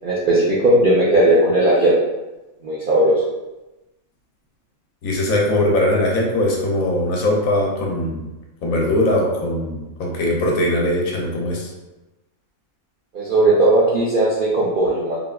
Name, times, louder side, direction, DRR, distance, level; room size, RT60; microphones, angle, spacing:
voice 1, 0.0-1.9 2.6-3.2 13.1-15.2, right 1 dB, 90° right, -7 dB, 0.4 m, -17 dB
voice 2, 5.0-8.3 8.6-11.7, left 1 dB, 75° left, -1 dB, 1.0 m, -20 dB
3.2 x 2.1 x 2.3 m, 1.1 s
omnidirectional pair, 1.5 m